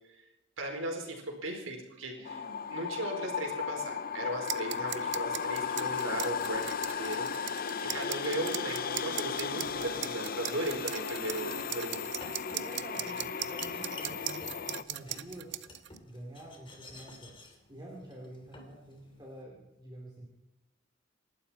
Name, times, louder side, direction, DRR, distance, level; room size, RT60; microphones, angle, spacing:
voice 1, 0.6-2.4 2.7-12.3, right 1 dB, 85° right, 2 dB, 4.4 m, -37 dB
voice 2, 2.1-2.7 11.2-11.6 12.4-15.6 16.0-17.4 17.7-20.3, right 1 dB, 20° right, -3 dB, 3.2 m, -48 dB
sound 1, 2.3-14.8, left 6 dB, 45° left, 0.7 m, -36 dB
sound 2, 4.5-16.0, right 13 dB, 60° right, 0.7 m, -39 dB
Domestic sounds home sounds, 11.2-19.4, left 2 dB, 25° left, 2.7 m, -51 dB
28.0 x 12.0 x 4.4 m, 1.0 s
head